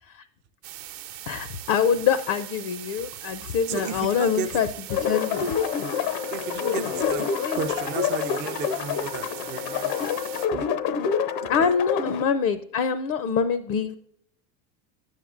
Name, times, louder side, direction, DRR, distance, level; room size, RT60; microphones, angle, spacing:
sound 1, 0.6-10.5, right 14 dB, 60° right, 0.8 m, -40 dB
voice 1, 1.3-5.5 7.3-7.7 11.5-14.0, left 7 dB, 45° left, 12 dB, 0.5 m, -25 dB
voice 2, 3.7-4.5 6.3-10.1 10.5-10.7 11.4-11.7, right 7 dB, 25° right, 8 dB, 0.3 m, -34 dB
sound 2, 4.9-12.2, left 7 dB, 80° left, 0.9 m, -27 dB
9.8 x 7.3 x 2.4 m, 0.74 s
supercardioid pair, 125°, 49 cm